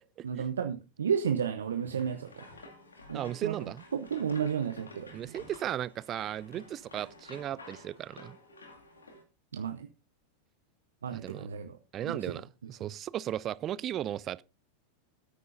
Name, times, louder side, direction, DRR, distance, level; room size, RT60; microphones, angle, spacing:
voice 1, 0.2-2.4 3.1-5.3 9.5-9.9 11.0-11.8 12.0-12.4, right 7 dB, 75° right, 0.8 m, -33 dB
sound 1, 1.6-9.2, left 2 dB, 85° left, 2.2 m, -52 dB
voice 2, 3.1-3.8 5.1-8.4 11.1-11.5 11.9-14.4, right 11 dB, 35° right, 0.4 m, -36 dB
16.5 x 9.4 x 2.6 m
figure-of-eight pair, 90°, 0 cm